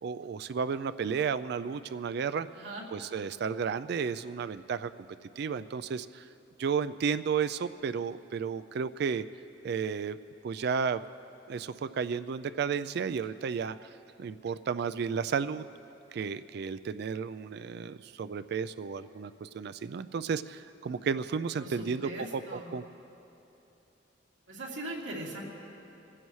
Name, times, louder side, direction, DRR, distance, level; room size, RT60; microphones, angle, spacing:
voice 1, 0.0-2.6 2.9-4.9 5.4-6.2 6.6-9.2 9.6-10.2 10.4-11.0 11.5-13.8 14.2-15.6 16.1-22.8, right 6 dB, 60° right, 13 dB, 0.4 m, -33 dB
voice 2, 21.6-22.7 24.5-25.4, right 1 dB, 85° right, -4 dB, 2.8 m, -40 dB
26.0 x 15.5 x 3.2 m, 2.9 s
head